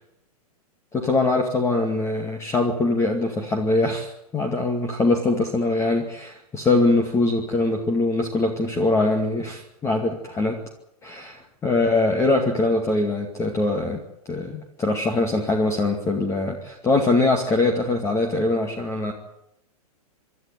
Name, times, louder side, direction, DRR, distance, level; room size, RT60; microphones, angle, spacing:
voice 1, 0.9-10.6 11.0-14.0 14.3-19.1, left 2 dB, 15° left, 3 dB, 2.3 m, -22 dB
26.5 x 12.5 x 9.5 m, 0.83 s
figure-of-eight pair, 110°, 20 cm